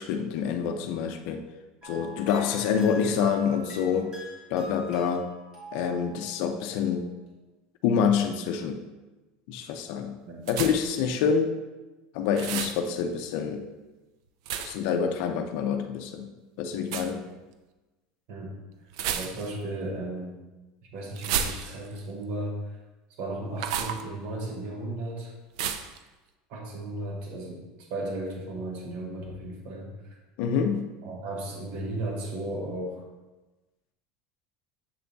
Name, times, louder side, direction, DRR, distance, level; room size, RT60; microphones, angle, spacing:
voice 1, 0.0-1.4 1.8-4.1 4.5-5.3 5.7-7.1 7.8-8.8 9.5-10.2 10.5-11.6 12.1-13.6 14.6-16.3 16.6-17.2 30.4-30.9, left 7 dB, 60° left, 6 dB, 0.5 m, -27 dB
sound 1, 1.8-7.0, equal, 25° right, 2.1 m, -45 dB
voice 2, 10.3-10.8 18.3-18.5 19.1-20.4 20.9-22.7 23.2-25.3 26.5-27.6 27.9-29.9 31.0-33.0, right 1 dB, 55° right, -1 dB, 1.4 m, -35 dB
sound 2, 10.5-11.0 12.3-12.8 14.5-14.9 16.8-17.1 18.9-19.6 21.2-22.0 23.6-24.0 25.6-26.0, right 8 dB, 75° right, 0.5 m, -31 dB
7.6 x 3.5 x 3.9 m, 1.1 s
cardioid pair, 165°, 3 cm